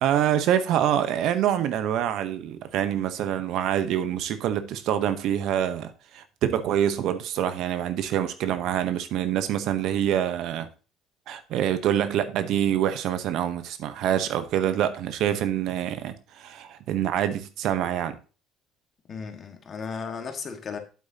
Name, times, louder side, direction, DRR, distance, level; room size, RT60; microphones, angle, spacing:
voice 1, 0.0-10.7 11.3-18.2, right 10 dB, 65° right, 0.8 m, -26 dB
voice 2, 19.1-20.8, left 5 dB, 35° left, 1.6 m, -35 dB
8.4 x 7.7 x 2.8 m
cardioid pair, 110°, 0 cm